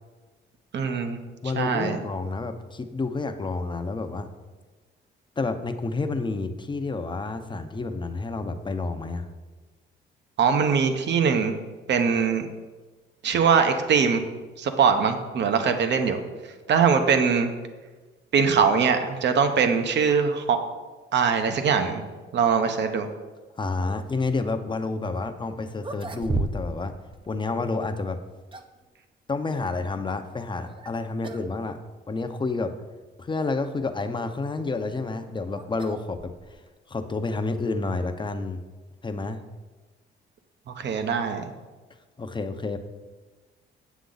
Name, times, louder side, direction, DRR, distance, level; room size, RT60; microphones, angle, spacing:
voice 1, 0.7-1.2 1.6-2.0 10.4-11.6 11.9-12.5 13.2-14.2 14.6-16.2 16.7-17.5 18.3-20.6 21.1-22.0 22.3-23.1 40.8-41.4, right 6 dB, 60° right, 7 dB, 1.0 m, -22 dB
voice 2, 1.4-4.3 5.4-9.3 23.6-27.0 27.3-28.2 29.3-31.8 32.1-32.7 33.2-36.3 36.9-38.6 39.0-39.4 42.2-42.8, left 3 dB, 25° left, 8 dB, 0.7 m, -29 dB
sound 1, 25.3-25.4 25.8-26.9 27.1-27.3 28.1-28.8 30.6-30.9 31.2-31.5 31.8-31.9 32.7-32.8 34.6-36.7, right 3 dB, 25° right, 0.6 m, -34 dB
8.2 x 7.2 x 3.9 m, 1.3 s
cardioid pair, 90°, 20 cm